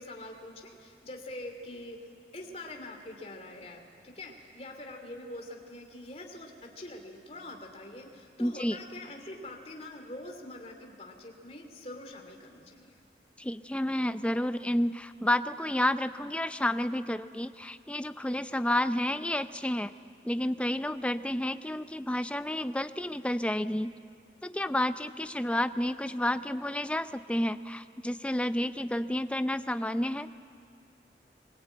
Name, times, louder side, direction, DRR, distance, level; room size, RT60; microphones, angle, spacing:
voice 1, 0.0-2.1 2.3-13.0, left 1 dB, 35° left, 3 dB, 2.6 m, -44 dB
voice 2, 8.4-8.8 13.4-19.9 20.2-23.9 24.4-30.3, left 1 dB, 5° left, 11 dB, 0.5 m, -30 dB
23.5 x 21.0 x 9.1 m, 2.3 s
head